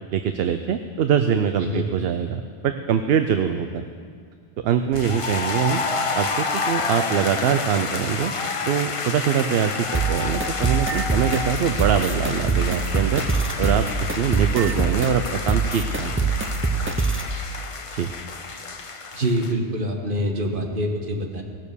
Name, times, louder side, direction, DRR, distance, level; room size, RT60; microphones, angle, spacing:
voice 1, 0.1-3.8 4.6-5.8 6.1-8.3 8.7-13.2 13.6-16.1 17.9-18.1, right 8 dB, 70° right, 8 dB, 0.8 m, -23 dB
sound 1, 4.9-19.5, left 4 dB, 35° left, 0.7 m, -29 dB
sound 2, 9.9-17.3, right 4 dB, 15° right, 0.5 m, -25 dB
voice 2, 19.1-21.4, equal, 55° right, 2 dB, 1.5 m, -25 dB
17.5 x 6.7 x 6.8 m, 2.1 s
omnidirectional pair, 1.1 m